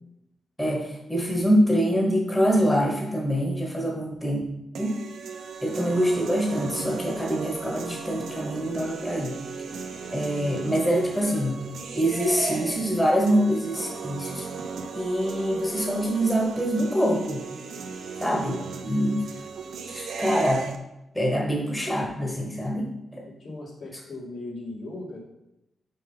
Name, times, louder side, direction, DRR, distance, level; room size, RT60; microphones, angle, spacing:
voice 1, 0.6-4.4 4.7-4.9 5.6-9.4 10.1-11.6 11.9-14.5 14.9-17.4 18.2-19.2 19.9-20.7 21.1-23.3, equal, 10° left, -1 dB, 1.3 m, -25 dB
sound 1, 4.8-20.8, right 5 dB, 85° right, 0.7 m, -36 dB
voice 2, 23.4-25.2, left 2 dB, 70° left, -5 dB, 2.6 m, -38 dB
5.5 x 5.4 x 5.5 m, 0.90 s
wide cardioid pair, 120°, 0 cm